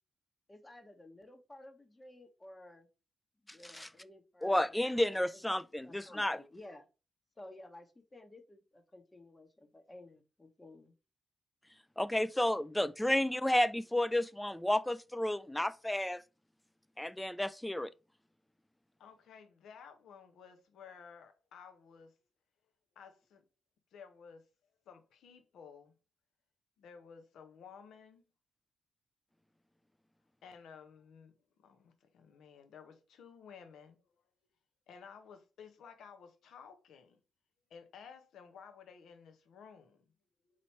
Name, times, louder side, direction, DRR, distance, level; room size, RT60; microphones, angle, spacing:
voice 1, 0.5-2.9 3.5-4.8 5.3-5.4 5.8-6.9 7.4-10.9, left 1 dB, 25° left, 1.1 m, -54 dB
voice 2, 4.4-6.4 12.0-16.2 17.0-17.9, left 1 dB, 10° left, 0.4 m, -31 dB
voice 3, 19.0-22.1 23.0-23.4 23.9-24.5 24.9-25.9 26.8-28.2 30.4-34.0 34.9-37.2 37.7-40.0, left 6 dB, 70° left, 0.8 m, -54 dB
4.1 x 3.0 x 4.2 m
hypercardioid pair, 40°, 0 cm